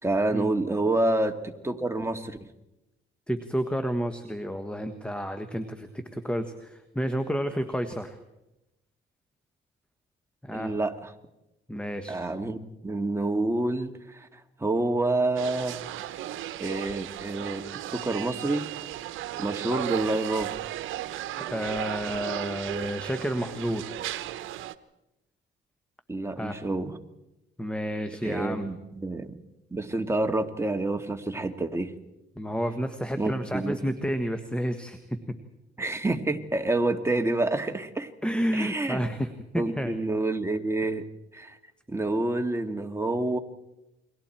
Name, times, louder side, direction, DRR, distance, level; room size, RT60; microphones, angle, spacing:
voice 1, 0.0-2.4 10.5-11.1 12.1-15.8 16.6-17.6 17.9-18.6 19.4-20.5 26.1-27.0 28.2-29.4 29.7-31.9 33.2-33.8 35.8-38.1 38.5-39.0 39.6-41.1 41.3-41.6 41.9-43.4, right 2 dB, 15° right, 5 dB, 1.9 m, -28 dB
voice 2, 3.3-8.2 10.4-10.7 11.7-12.2 21.4-23.9 26.4-26.6 27.6-28.7 32.4-35.4 38.2-40.0, equal, 5° left, 8 dB, 1.4 m, -30 dB
sound 1, 15.4-24.7, right 13 dB, 85° right, 0.9 m, -35 dB
29.5 x 23.0 x 4.5 m, 0.94 s
cardioid pair, 90°, 20 cm